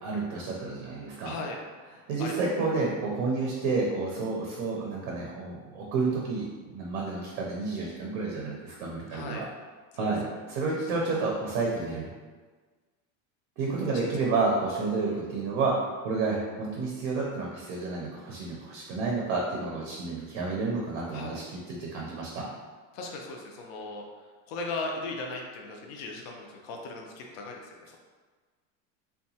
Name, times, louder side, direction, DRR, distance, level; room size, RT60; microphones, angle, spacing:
voice 1, 0.0-1.4 2.1-9.5 9.9-12.1 13.6-15.7 16.0-22.5, right 3 dB, 50° right, -2 dB, 0.5 m, -30 dB
voice 2, 1.2-1.6 2.2-2.3 9.1-9.4 9.9-10.1 13.9-14.0 14.3-14.4 15.0-15.2 21.1-21.4 22.9-24.0 24.5-28.0, left 3 dB, 55° left, 1 dB, 0.5 m, -38 dB
2.8 x 2.2 x 2.7 m, 1.4 s
supercardioid pair, 165°, 39 cm